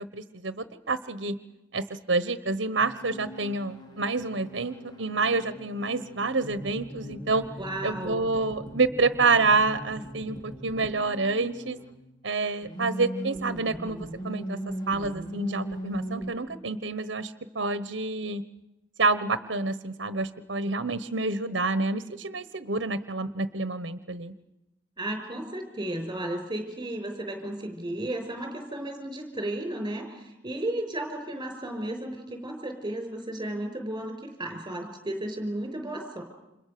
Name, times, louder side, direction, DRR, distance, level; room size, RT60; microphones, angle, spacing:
voice 1, 0.0-1.3 1.7-7.4 7.8-11.8 12.2-14.6 14.9-18.4 19.0-24.3, right 3 dB, 75° right, 13 dB, 1.2 m, -28 dB
sound 1, 2.8-12.0 12.6-16.3, right 1 dB, 25° left, 2.9 m, -39 dB
voice 2, 7.6-8.3 25.0-36.2, right 1 dB, 25° right, 5 dB, 5.6 m, -34 dB
30.0 x 27.0 x 6.9 m, 0.95 s
head